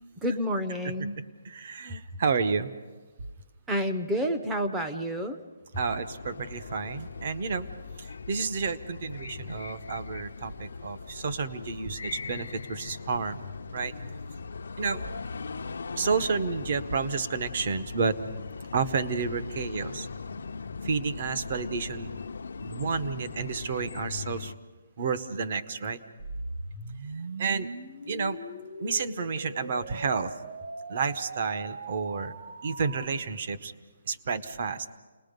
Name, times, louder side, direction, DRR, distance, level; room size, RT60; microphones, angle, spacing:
voice 1, 0.2-1.2 3.7-5.4, equal, 5° right, 5 dB, 0.7 m, -29 dB
voice 2, 1.4-2.7 5.8-7.7 8.0-13.4 13.7-13.9 14.8-15.0 16.0-18.2 18.7-20.1 20.8-22.1 22.6-24.5 25.0-26.0 27.4-27.7 28.1-28.4 28.8-30.3 30.9-32.3 32.6-33.7 34.1-34.9, right 5 dB, 35° right, 10 dB, 0.9 m, -30 dB
sound 1, 5.7-24.6, left 5 dB, 70° left, 0.7 m, -39 dB
sound 2, 26.2-33.0, right 2 dB, 55° right, 1.9 m, -40 dB
29.5 x 20.0 x 5.3 m, 1.4 s
hypercardioid pair, 175°, 0 cm